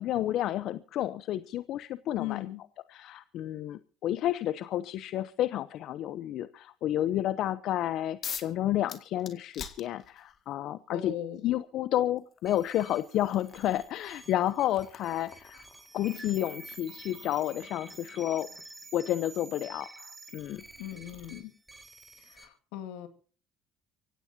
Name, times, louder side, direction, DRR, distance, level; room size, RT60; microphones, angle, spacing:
voice 1, 0.0-2.5 2.9-11.1 11.4-15.7 15.9-18.5 18.9-20.6, left 13 dB, 65° left, 15 dB, 0.7 m, -31 dB
voice 2, 2.2-2.6 10.9-11.4 20.8-21.5 22.2-23.1, left 12 dB, 85° left, 9 dB, 2.1 m, -38 dB
sound 1, 8.2-8.6 8.9-10.4 11.6-11.7 12.2-18.8, left 8 dB, 50° left, 2.0 m, -46 dB
sound 2, 12.5-22.4, right 2 dB, 10° right, 4.4 m, -49 dB
24.5 x 16.5 x 2.8 m, 0.40 s
supercardioid pair, 90°, 0 cm